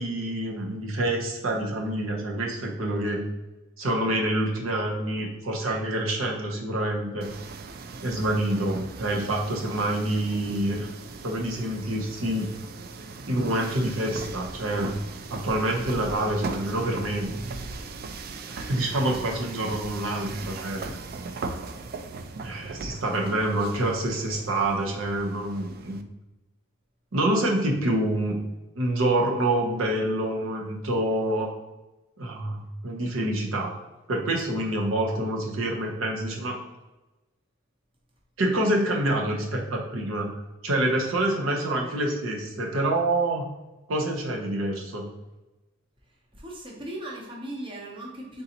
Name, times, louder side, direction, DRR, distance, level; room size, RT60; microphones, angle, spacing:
voice 1, 0.0-3.2 3.8-7.3 8.0-10.9 11.2-12.5 13.3-14.9 15.3-17.3 18.5-21.0 22.4-26.0 27.1-28.4 28.8-31.5 32.2-33.7 34.1-36.6 38.4-43.5 43.9-45.1, right 1 dB, 75° right, 0 dB, 0.7 m, -27 dB
Riding Walking Escalator Up To S Bhf Wedding, 7.2-26.0, right 3 dB, 45° right, 0.3 m, -39 dB
voice 2, 46.3-48.4, right 1 dB, 25° right, -1 dB, 0.7 m, -38 dB
4.0 x 3.8 x 2.8 m, 1.1 s
head